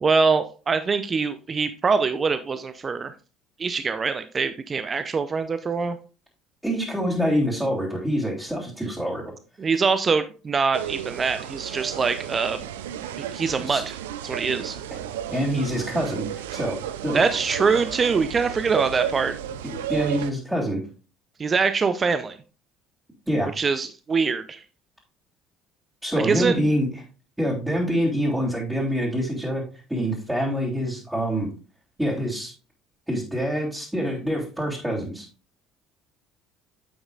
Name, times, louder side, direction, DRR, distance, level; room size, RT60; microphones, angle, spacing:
voice 1, 0.0-3.1 3.6-6.0 9.6-12.6 13.3-14.0 14.2-14.8 17.1-19.3 21.4-22.4 23.6-24.6 26.2-26.6, right 5 dB, 30° right, 11 dB, 0.6 m, -23 dB
voice 2, 6.6-9.3 13.6-13.8 15.3-16.2 16.5-16.8 17.0-17.2 19.9-20.8 23.3-23.5 26.0-26.9 27.4-29.6 29.9-31.5 32.0-32.5 33.1-35.3, equal, 10° right, -6 dB, 3.3 m, -25 dB
sound 1, 10.7-20.3, right 10 dB, 75° right, 0.5 m, -33 dB
8.8 x 8.0 x 2.5 m, 0.35 s
figure-of-eight pair, 60°, 0 cm